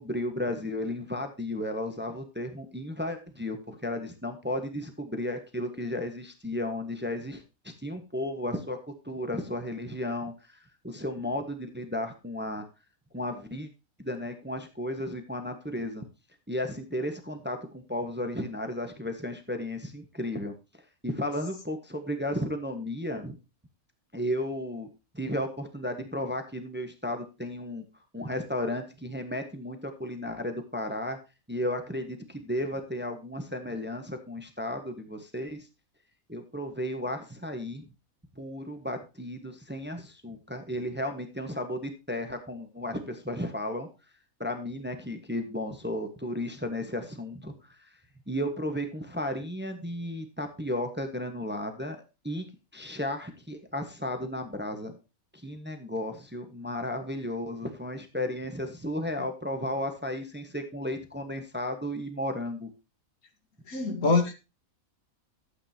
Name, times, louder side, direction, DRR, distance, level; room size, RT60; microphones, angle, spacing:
voice 1, 0.0-7.4 7.8-8.8 9.0-10.6 10.8-12.6 13.1-13.7 14.0-16.0 16.5-20.5 21.0-23.4 24.1-24.9 25.1-27.8 28.1-31.2 31.5-35.7 36.3-37.8 38.4-43.9 44.4-47.5 47.8-47.9 48.3-52.0 52.2-52.4 52.7-54.9 55.3-62.7, left 1 dB, 10° right, 1.1 m, -34 dB
voice 2, 63.7-64.3, left 3 dB, 80° left, 2.2 m, -24 dB
12.5 x 8.3 x 2.8 m
omnidirectional pair, 1.5 m